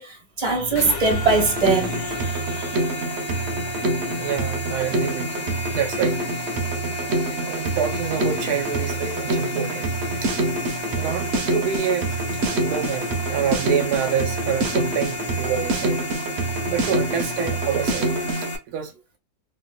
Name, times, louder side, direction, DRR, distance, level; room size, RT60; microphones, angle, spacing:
voice 1, 0.0-2.8, right 4 dB, 25° right, 1.1 m, -22 dB
sound 1, 0.7-18.6, left 1 dB, 85° left, 1.5 m, -32 dB
Drum kit, 1.1-18.5, right 2 dB, 55° right, 0.8 m, -26 dB
voice 2, 4.2-6.5 7.3-10.3 11.0-12.1 12.5-16.0 16.7-18.1 18.7-18.9, right 8 dB, 80° right, 1.1 m, -27 dB
3.3 x 2.9 x 2.2 m
omnidirectional pair, 1.7 m